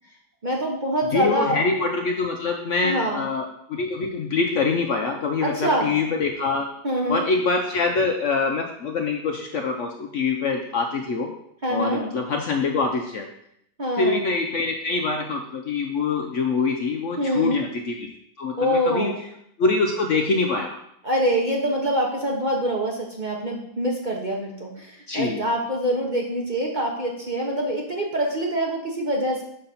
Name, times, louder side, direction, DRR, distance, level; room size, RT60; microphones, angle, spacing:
voice 1, 0.4-1.6 2.8-3.3 5.4-5.9 6.8-7.2 11.6-12.0 13.8-14.2 17.2-17.6 18.6-19.2 21.0-29.4, equal, 35° right, -1 dB, 0.9 m, -25 dB
voice 2, 1.1-6.7 7.1-11.3 11.7-13.3 14.0-18.1 18.4-19.2 19.6-20.8 25.1-25.4, left 4 dB, 60° left, 3 dB, 0.8 m, -24 dB
6.6 x 4.0 x 5.6 m, 0.75 s
omnidirectional pair, 1.8 m